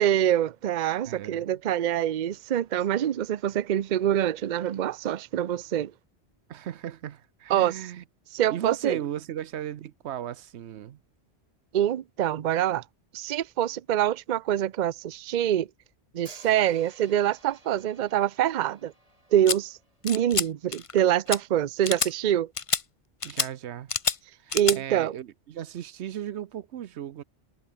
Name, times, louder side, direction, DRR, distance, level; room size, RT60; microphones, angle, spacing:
voice 1, 0.0-5.9 7.5-7.8 8.3-9.0 11.7-12.8 13.1-15.7 16.1-18.9 19.3-19.8 20.0-22.5 24.5-25.1, right 11 dB, 50° right, 0.6 m, -25 dB
voice 2, 1.0-1.6 6.5-8.0 8.5-11.0 23.2-23.9 24.4-27.2, right 10 dB, 90° right, 1.0 m, -36 dB
Hi-hat, 16.3-20.2, right 1 dB, 35° right, 6.0 m, -54 dB
sound 1, 19.5-19.6 20.1-20.5 20.7-21.0 21.3-21.4 21.8-22.1 22.6-22.8 23.2-23.5 23.9-24.2 24.5-24.8, left 5 dB, 35° left, 0.8 m, -27 dB
omnidirectional pair, 1.1 m